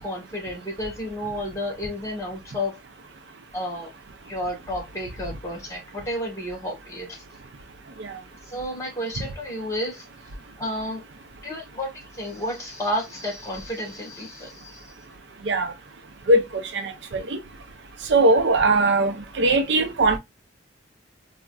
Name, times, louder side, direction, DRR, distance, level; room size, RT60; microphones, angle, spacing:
voice 1, 0.0-2.8 3.5-3.9 4.2-7.2 8.5-10.0 10.6-11.0 11.4-14.9, left 1 dB, 15° left, 1.2 m, -31 dB
voice 2, 16.3-17.4 18.1-20.2, right 2 dB, 65° right, 0.4 m, -20 dB
3.7 x 2.1 x 2.2 m
head